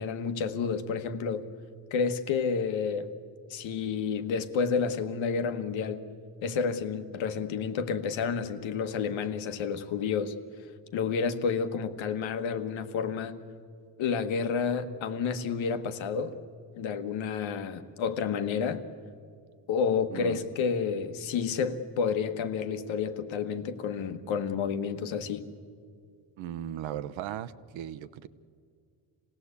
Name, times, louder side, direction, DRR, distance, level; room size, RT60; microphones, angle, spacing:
voice 1, 0.0-1.5 1.9-3.1 3.5-6.0 6.4-10.3 10.9-13.4 14.0-16.4 16.8-18.8 19.7-25.4, left 6 dB, 85° left, 8 dB, 1.5 m, -30 dB
voice 2, 20.1-20.5 26.4-28.3, right 11 dB, 85° right, 13 dB, 1.0 m, -37 dB
26.5 x 17.5 x 8.3 m, 2.2 s
cardioid pair, 135°, 46 cm